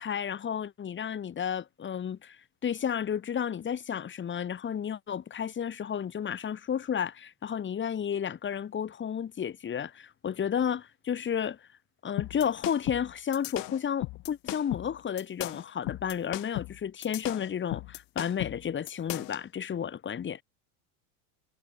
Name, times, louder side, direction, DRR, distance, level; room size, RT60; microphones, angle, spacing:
voice 1, 0.0-11.6 12.0-20.4, left 8 dB, 25° left, 3.1 m, -32 dB
sound 1, 12.2-19.4, left 21 dB, 50° left, 2.0 m, -36 dB
supercardioid pair, 120°, 43 cm